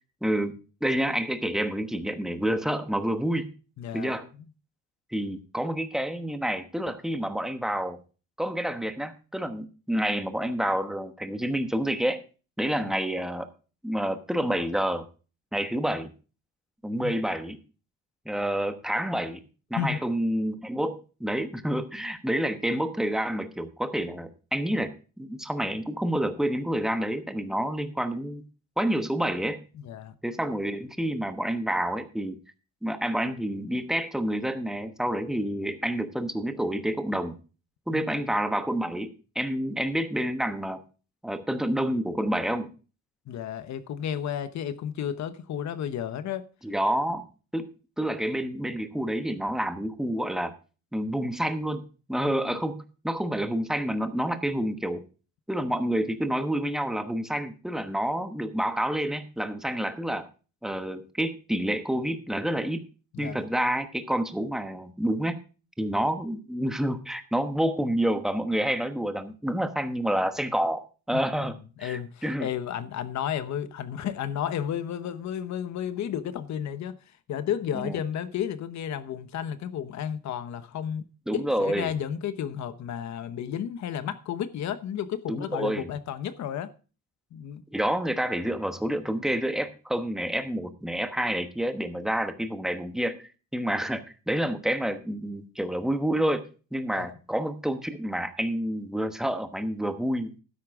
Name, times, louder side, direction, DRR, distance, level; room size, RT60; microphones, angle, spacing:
voice 1, 0.2-0.5 0.8-3.5 3.9-4.3 5.1-8.0 8.4-12.2 12.6-13.5 13.8-15.1 15.5-16.1 16.8-17.6 18.2-19.4 19.7-24.9 25.2-28.5 28.8-29.6 30.2-32.4 32.8-37.4 37.9-40.8 41.2-42.7 46.6-47.3 47.5-50.5 50.9-55.0 55.5-60.3 60.6-62.8 63.2-65.4 65.8-72.5 77.7-78.0 81.3-81.9 85.3-85.9 87.7-100.3, right 1 dB, ahead, 1.1 m, -28 dB
voice 2, 3.8-4.1 12.8-12.9 17.0-17.1 19.8-20.0 29.7-30.1 37.9-38.2 43.3-46.5 52.3-52.6 63.1-63.5 71.1-71.5 71.8-77.0 77.3-81.1 81.3-86.7 87.3-87.6 96.9-97.1, left 9 dB, 65° left, 1.0 m, -32 dB
12.5 x 10.0 x 3.6 m
cardioid pair, 135°, 31 cm